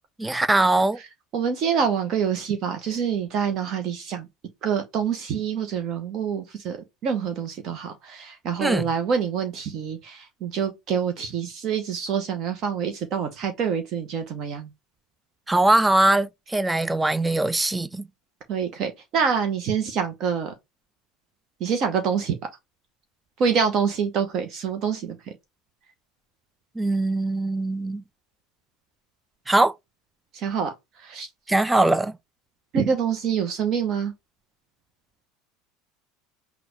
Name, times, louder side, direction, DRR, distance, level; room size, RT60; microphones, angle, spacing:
voice 1, 0.2-1.0 8.6-8.9 15.5-18.1 26.8-28.0 29.5-29.7 31.5-32.1, right 2 dB, 10° right, 0.4 m, -21 dB
voice 2, 1.3-4.3 4.6-6.8 7.0-14.7 18.5-20.5 21.6-22.4 23.4-25.2 30.3-30.7 31.0-31.3 32.7-34.1, right 7 dB, 45° right, 0.9 m, -26 dB
5.9 x 2.4 x 3.0 m
figure-of-eight pair, 70°, 0 cm